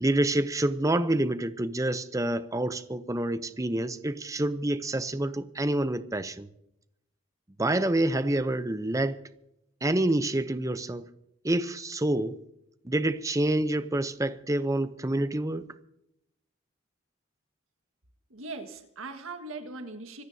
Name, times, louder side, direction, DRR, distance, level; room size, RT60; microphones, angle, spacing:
voice 1, 0.0-6.5 7.6-9.2 9.8-11.1 11.4-12.4 12.8-15.7, right 1 dB, 15° right, 0.6 m, -27 dB
voice 2, 18.3-20.2, right 3 dB, 90° right, 1.7 m, -40 dB
25.5 x 15.0 x 2.8 m
head